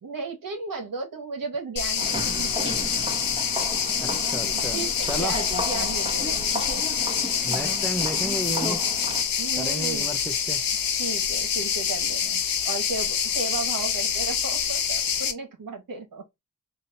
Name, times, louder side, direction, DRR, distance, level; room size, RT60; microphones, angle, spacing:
voice 1, 0.0-2.7 4.2-6.8 9.4-10.1 11.0-16.2, right 3 dB, 75° right, 1.5 m, -35 dB
sound 1, 1.8-15.3, left 7 dB, 80° left, 0.7 m, -26 dB
sound 2, 2.0-9.2, equal, 15° right, 1.3 m, -34 dB
voice 2, 4.0-5.4 7.4-8.8 9.5-10.6, equal, ahead, 0.7 m, -33 dB
3.5 x 2.8 x 2.8 m
cardioid pair, 55°, 34 cm